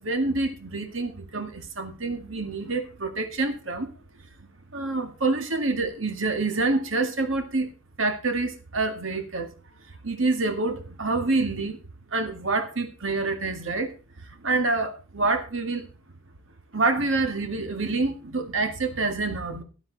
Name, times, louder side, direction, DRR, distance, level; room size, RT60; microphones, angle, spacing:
voice 1, 0.0-3.9 4.7-7.7 8.0-9.5 10.0-11.8 12.1-13.9 14.4-15.8 16.7-19.6, right 3 dB, 65° right, 6 dB, 1.9 m, -27 dB
12.5 x 12.0 x 4.0 m, 0.33 s
head